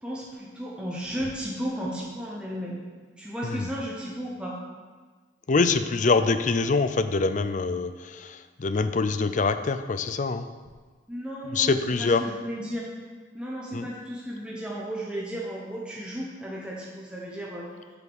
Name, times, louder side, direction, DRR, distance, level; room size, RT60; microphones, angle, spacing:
voice 1, 0.0-2.8 3.2-4.6 11.1-12.8 13.3-17.7, equal, 5° right, -4 dB, 1.1 m, -34 dB
voice 2, 3.4-3.7 5.5-10.4 11.5-12.2 13.7-13.8, left 4 dB, 40° left, 11 dB, 0.5 m, -25 dB
7.8 x 5.8 x 7.1 m, 1.4 s
head